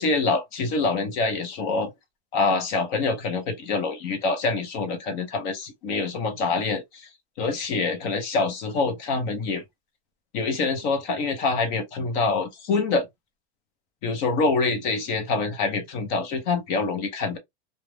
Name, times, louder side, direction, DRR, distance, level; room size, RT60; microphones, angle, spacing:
voice 1, 0.0-1.9 2.3-7.1 7.4-9.6 10.3-13.1 14.0-17.4, left 4 dB, 45° left, 0.7 m, -25 dB
2.4 x 2.1 x 3.1 m
supercardioid pair, 170°, 32 cm